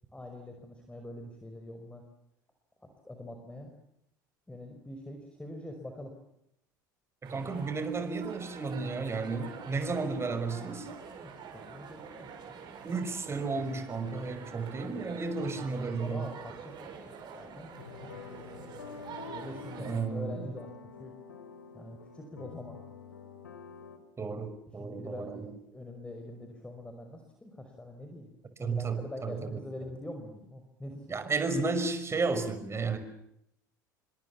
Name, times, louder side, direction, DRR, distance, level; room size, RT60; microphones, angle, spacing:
voice 1, 0.1-2.0 2.8-3.7 4.5-6.2 11.2-12.3 15.9-18.7 19.1-20.7 21.0-21.2 21.7-22.8 24.7-28.3 28.6-31.1, left 1 dB, 10° left, 4 dB, 5.5 m, -45 dB
voice 2, 7.2-10.9 12.8-16.3 19.8-20.5 24.2-25.5 28.6-29.6 31.1-33.0, right 4 dB, 25° right, 10 dB, 5.6 m, -33 dB
sound 1, 7.2-20.0, right 6 dB, 45° right, 7.6 m, -47 dB
sound 2, 17.8-24.0, left 5 dB, 85° left, 3.5 m, -47 dB
28.5 x 25.5 x 7.3 m, 0.78 s
hypercardioid pair, 70°, 11 cm